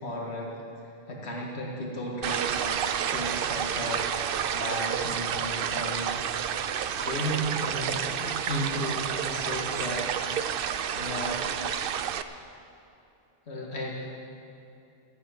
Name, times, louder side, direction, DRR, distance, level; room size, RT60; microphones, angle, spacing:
voice 1, 0.0-0.5 0.8-2.7 3.0-6.3 7.0-10.1 11.0-11.5 13.5-13.9, equal, 70° left, -2 dB, 2.1 m, -34 dB
sound 1, 2.2-12.2, right 8 dB, 60° right, 0.7 m, -30 dB
14.5 x 8.1 x 9.2 m, 2.7 s
omnidirectional pair, 1.1 m